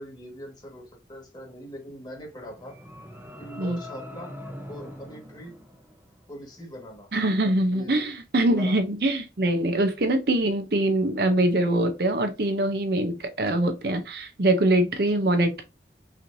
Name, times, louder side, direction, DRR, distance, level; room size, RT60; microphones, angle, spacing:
voice 1, 0.0-2.8 3.4-4.3 4.7-5.6 6.3-7.1 7.7-8.1 8.6-8.8 15.1-15.2, equal, 25° left, 1.6 m, -41 dB
sound 1, 2.3-6.4, left 1 dB, 10° right, 0.8 m, -43 dB
voice 2, 7.1-15.6, right 1 dB, 55° right, 0.6 m, -23 dB
5.7 x 3.1 x 2.6 m
head